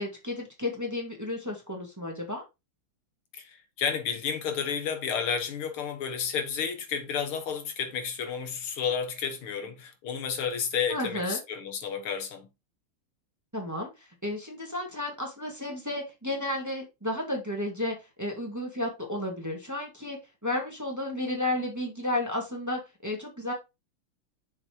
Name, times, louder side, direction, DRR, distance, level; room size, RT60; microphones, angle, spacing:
voice 1, 0.0-2.4 10.9-11.4 13.5-13.9 14.2-23.5, left 1 dB, 10° right, 1.8 m, -32 dB
voice 2, 3.3-12.5, left 7 dB, 85° left, 2.2 m, -31 dB
6.7 x 4.2 x 4.5 m
omnidirectional pair, 2.3 m